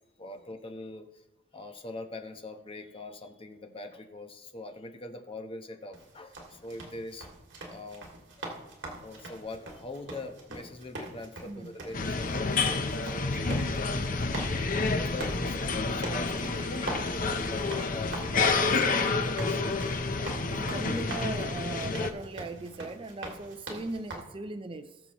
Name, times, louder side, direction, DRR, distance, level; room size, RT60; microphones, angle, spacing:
voice 1, 0.2-1.2 1.5-7.3 7.6-8.1 8.4-8.5 9.0-13.7 14.7-19.6 20.1-20.5, left 2 dB, 30° left, 5 dB, 1.1 m, -43 dB
sound 1, 5.9-24.2, right 1 dB, 70° right, 2.6 m, -42 dB
voice 2, 11.4-11.8 20.5-25.0, right 2 dB, 30° right, 8 dB, 0.5 m, -39 dB
sound 2, 11.9-22.1, left 3 dB, 50° left, 0.8 m, -29 dB
19.5 x 6.8 x 3.1 m, 0.97 s
head